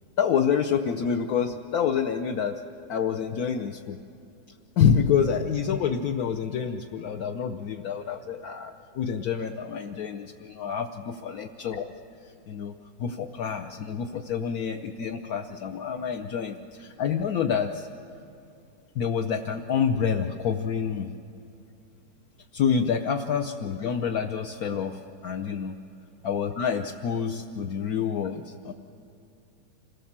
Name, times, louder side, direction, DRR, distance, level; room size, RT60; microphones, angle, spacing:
voice 1, 0.2-2.6 2.9-4.0 4.8-11.9 12.2-12.7 13.0-17.9 18.9-21.1 22.5-25.7 26.2-28.7, left 7 dB, 65° left, 4 dB, 0.9 m, -27 dB
26.5 x 17.0 x 7.3 m, 2.7 s
omnidirectional pair, 2.3 m